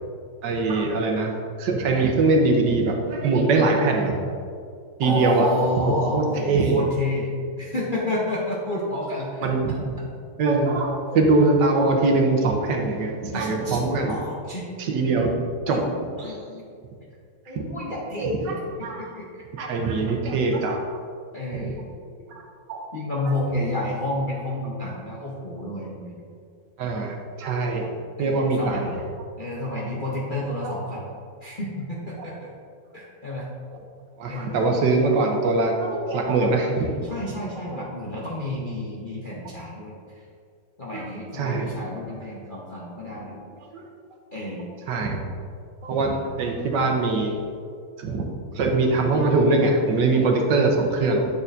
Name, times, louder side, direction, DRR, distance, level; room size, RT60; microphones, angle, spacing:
voice 1, 0.4-1.3 1.6-4.2 5.0-5.5 5.8-6.8 9.4-9.9 10.4-14.2 14.8-15.3 15.7-15.8 17.5-17.6 18.2-19.0 19.6-20.8 21.5-21.7 22.3-22.4 22.7-22.8 26.8-27.9 28.2-29.0 30.6-30.7 34.2-37.1 40.9-41.1 41.3-41.7 42.1-42.2 43.6-43.9 44.9-45.2 45.8-47.4 48.0-48.3 48.5-51.3, right 3 dB, 70° right, 2 dB, 1.3 m, -22 dB
voice 2, 5.0-7.3 7.6-9.5 13.3-13.8 14.1-14.7 15.7-15.8 16.2-16.7 17.5-18.4 18.8-19.4 21.3-21.8 22.9-26.3 28.2-28.8 29.4-31.1 31.4-32.5 32.9-33.5 34.3-34.6 37.0-39.9 40.8-43.4 44.3-44.7 46.0-46.2, left 1 dB, 45° left, -6 dB, 0.6 m, -30 dB
8.4 x 6.6 x 2.6 m, 2.3 s
omnidirectional pair, 2.1 m